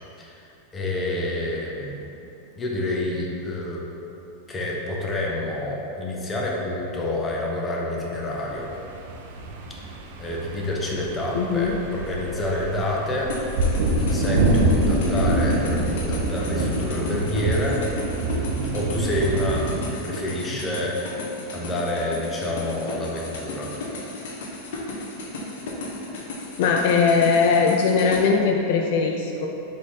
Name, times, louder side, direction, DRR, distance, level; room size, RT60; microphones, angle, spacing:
voice 1, 0.2-2.0 2.5-3.8 4.5-8.7 9.7-9.8 10.2-13.7 14.0-17.8 18.6-21.2 21.5-23.8, left 1 dB, 15° left, -3 dB, 0.7 m, -28 dB
sound 1, 8.4-19.8, right 2 dB, 65° right, 0.5 m, -25 dB
voice 2, 11.3-11.8 26.6-29.5, left 5 dB, 60° left, 1 dB, 0.3 m, -20 dB
sound 2, 13.3-28.2, left 2 dB, 75° left, 0.8 m, -35 dB
4.0 x 3.3 x 3.6 m, 2.9 s
supercardioid pair, 140°, 0 cm